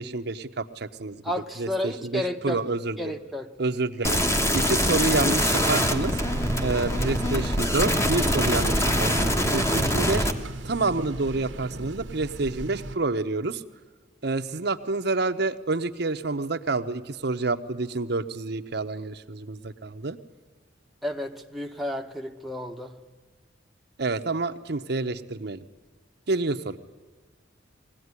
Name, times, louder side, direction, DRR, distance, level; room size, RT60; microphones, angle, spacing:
voice 1, 0.0-1.2 1.6-3.1 3.6-4.2 4.5-6.1 6.6-10.3 10.6-13.6 14.2-20.2 24.0-25.6 26.3-26.8, right 3 dB, 60° right, 8 dB, 0.8 m, -28 dB
voice 2, 1.2-2.6 3.0-3.5 21.0-23.0, left 1 dB, ahead, 1 dB, 1.1 m, -31 dB
sound 1, 4.0-10.3, equal, 15° left, 1.3 m, -24 dB
sound 2, 5.5-13.0, right 2 dB, 85° right, 1.1 m, -36 dB
21.5 x 16.5 x 9.7 m, 1.4 s
head